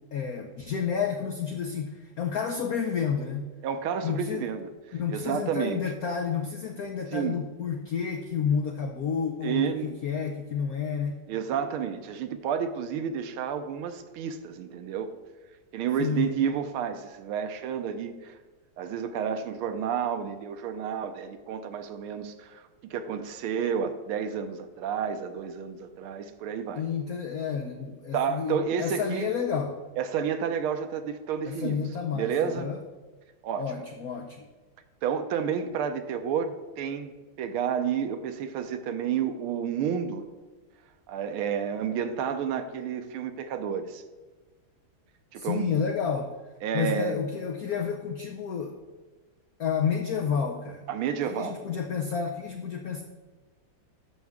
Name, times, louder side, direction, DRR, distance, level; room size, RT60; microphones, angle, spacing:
voice 1, 0.1-3.5 4.0-4.5 4.9-11.2 16.0-16.3 26.8-29.8 31.5-32.8 33.6-34.5 45.4-46.3 46.7-48.8 49.6-50.8 51.3-53.0, left 6 dB, 85° left, 4 dB, 0.8 m, -30 dB
voice 2, 3.6-5.8 7.1-7.4 8.4-8.5 9.4-10.0 11.3-15.1 15.7-18.4 18.8-26.8 28.1-29.3 30.0-31.8 32.1-32.7 33.4-33.6 35.0-37.1 37.4-40.2 41.1-44.0 45.3-45.8 46.6-47.2 50.9-51.6, right 7 dB, 80° right, 9 dB, 1.5 m, -30 dB
11.0 x 6.4 x 3.6 m, 1.3 s
omnidirectional pair, 2.4 m